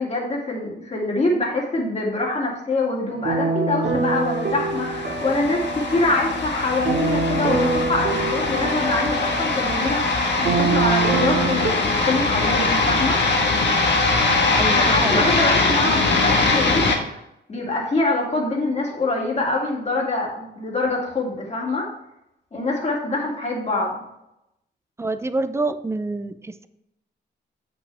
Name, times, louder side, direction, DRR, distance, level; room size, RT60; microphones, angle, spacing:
voice 1, 0.0-13.2 14.4-17.2 17.5-21.9 22.5-23.9, left 2 dB, 35° left, -2 dB, 2.4 m, -24 dB
sound 1, 3.1-11.7, right 4 dB, 60° right, 2.1 m, -25 dB
sound 2, 4.4-17.0, left 3 dB, 70° left, 1.5 m, -22 dB
voice 2, 14.5-15.3 25.0-26.7, right 2 dB, 15° right, 11 dB, 0.5 m, -27 dB
8.1 x 6.1 x 3.4 m, 0.85 s
cardioid pair, 115°, 19 cm